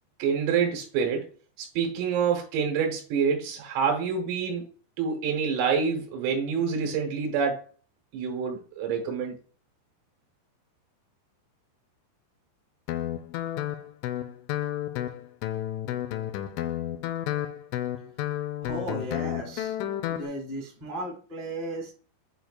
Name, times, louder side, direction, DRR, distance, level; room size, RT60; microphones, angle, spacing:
voice 1, 0.2-1.3 1.6-4.7 5.0-7.7 8.1-9.4, right 6 dB, 85° right, 2 dB, 3.9 m, -27 dB
Guitar, 12.9-20.3, left 12 dB, 85° left, 2.8 m, -31 dB
voice 2, 18.6-19.8 20.1-21.9, right 1 dB, 20° right, -2 dB, 1.1 m, -35 dB
9.0 x 4.3 x 2.4 m, 0.40 s
omnidirectional pair, 5.9 m